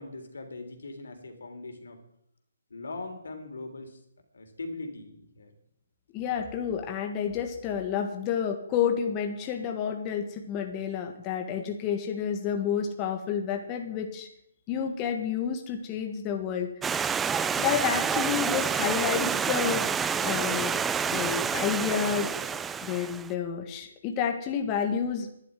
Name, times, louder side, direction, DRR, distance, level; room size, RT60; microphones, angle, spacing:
voice 1, 0.0-2.0 2.7-4.0 4.3-5.5, left 2 dB, 80° left, 5 dB, 3.4 m, -40 dB
voice 2, 6.1-14.3 14.7-16.8 17.5-20.8 21.1-22.3 22.8-25.3, left 8 dB, 25° left, 4 dB, 1.5 m, -30 dB
Stream, 16.8-23.3, right 6 dB, 10° right, 0.4 m, -28 dB
11.0 x 9.5 x 9.2 m, 0.76 s
hypercardioid pair, 155°, 0 cm